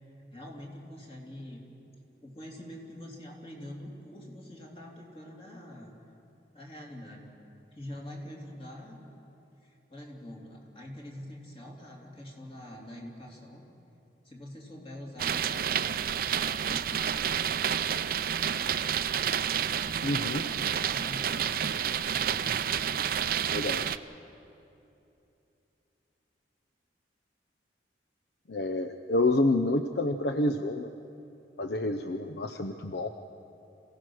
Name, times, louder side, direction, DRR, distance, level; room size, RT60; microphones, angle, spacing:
voice 1, 0.3-1.6 2.2-5.9 6.5-7.3 7.7-9.0 9.6-13.6 14.2-17.4 18.0-18.3 20.2-21.7, left 1 dB, 30° left, -1 dB, 3.1 m, -45 dB
sound 1, 15.2-24.0, right 8 dB, 55° right, 0.5 m, -29 dB
voice 2, 20.0-20.4 23.2-23.3 23.5-23.9 28.5-30.9 31.6-33.1, left 2 dB, 65° left, 7 dB, 0.7 m, -28 dB
27.0 x 16.5 x 6.3 m, 2.8 s
head